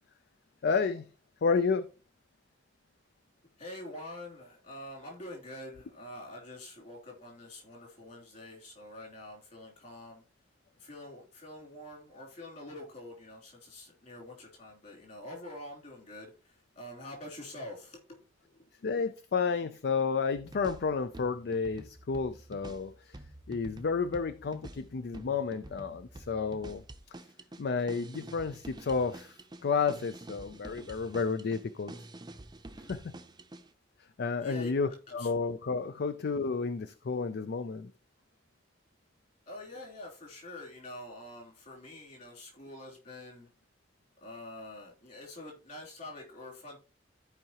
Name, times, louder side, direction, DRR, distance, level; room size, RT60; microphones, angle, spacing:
voice 1, 0.6-1.0 1.4-1.9 18.8-23.2 23.5-26.8 27.6-31.9 32.9-33.0 34.2-37.9, left 5 dB, 60° left, 0.4 m, -31 dB
voice 2, 3.6-10.2 10.8-18.2 34.4-34.7 35.1-35.3 39.5-43.5 44.2-46.8, left 1 dB, 45° left, 3.0 m, -46 dB
sound 1, 20.3-33.7, right 1 dB, 25° right, 0.6 m, -48 dB
13.5 x 4.7 x 2.9 m
head